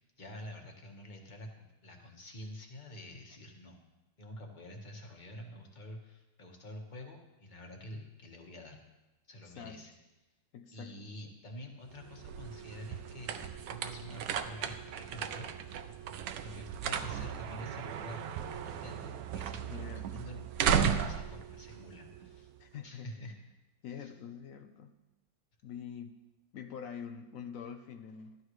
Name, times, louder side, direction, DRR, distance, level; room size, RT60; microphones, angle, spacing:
voice 1, 0.2-3.8 4.2-8.8 9.3-9.9 10.7-15.5 16.4-18.3 18.6-22.5 22.8-23.4 23.9-24.1, equal, 25° left, 2 dB, 1.2 m, -47 dB
voice 2, 9.4-9.8 10.5-11.1 19.7-20.2 22.6-23.1 23.8-25.0 25.6-28.4, left 7 dB, 90° left, 6 dB, 0.7 m, -45 dB
sound 1, 11.9-22.6, right 8 dB, 75° right, 0.8 m, -36 dB
13.5 x 11.5 x 3.2 m, 1.0 s
omnidirectional pair, 2.2 m